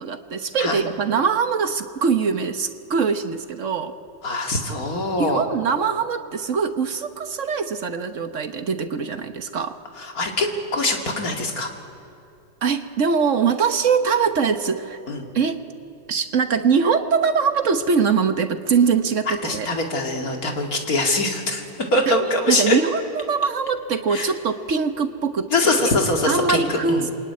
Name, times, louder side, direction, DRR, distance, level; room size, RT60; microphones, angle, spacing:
voice 1, 0.0-3.9 5.2-9.8 12.6-15.0 15.3-15.6 16.1-19.7 22.1-22.2 22.5-25.9 26.3-27.1, right 5 dB, 50° right, 8 dB, 1.2 m, -22 dB
voice 2, 4.2-5.4 10.0-11.7 15.1-15.2 19.3-21.6 21.9-22.8 24.1-24.3 25.5-27.1, left 2 dB, 50° left, 2 dB, 2.8 m, -23 dB
26.5 x 22.0 x 9.6 m, 2.6 s
omnidirectional pair, 2.0 m